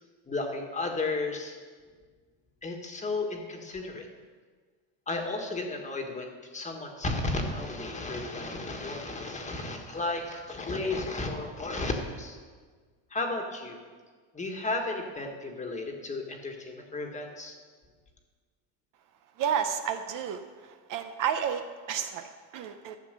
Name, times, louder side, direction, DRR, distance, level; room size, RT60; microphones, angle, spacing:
voice 1, 0.3-1.5 2.6-4.1 5.1-12.4 13.1-13.8 14.3-17.5, left 2 dB, 15° left, 3 dB, 1.5 m, -33 dB
voice 2, 19.4-20.4 20.9-23.0, right 8 dB, 50° right, 8 dB, 0.8 m, -31 dB
12.5 x 7.3 x 6.7 m, 1.5 s
cardioid pair, 140°, 41 cm